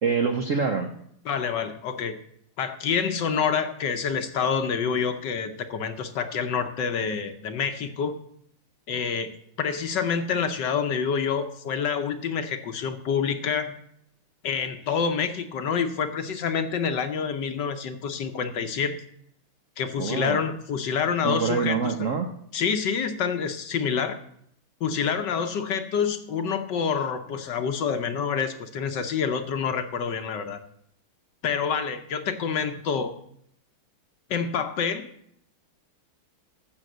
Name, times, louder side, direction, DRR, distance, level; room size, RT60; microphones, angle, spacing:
voice 1, 0.0-0.9 20.0-20.4 21.2-22.3, right 5 dB, 55° right, 5 dB, 0.9 m, -25 dB
voice 2, 1.3-2.1 2.6-8.2 8.9-9.3 9.6-13.8 14.4-19.0 19.8-21.9 22.5-24.2 24.8-30.6 31.4-33.2 34.3-35.1, left 6 dB, 60° left, 8 dB, 1.4 m, -27 dB
13.5 x 6.9 x 7.8 m, 0.70 s
omnidirectional pair, 2.4 m